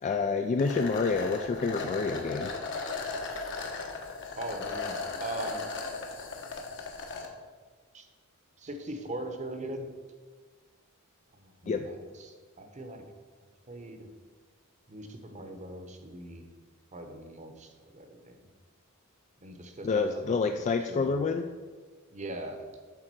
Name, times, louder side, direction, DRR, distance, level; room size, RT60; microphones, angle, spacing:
voice 1, 0.0-2.5 11.7-11.8 19.8-21.5, left 4 dB, 30° left, 6 dB, 0.3 m, -28 dB
sound 1, 0.6-7.3, left 4 dB, 55° left, 1.1 m, -37 dB
voice 2, 4.4-5.6 7.9-8.1 8.6-9.9 11.3-13.1 13.7-14.1 14.9-16.4 16.9-18.5 19.4-21.2 22.1-22.7, right 1 dB, 30° right, 5 dB, 0.9 m, -40 dB
8.4 x 3.8 x 6.1 m, 1.5 s
head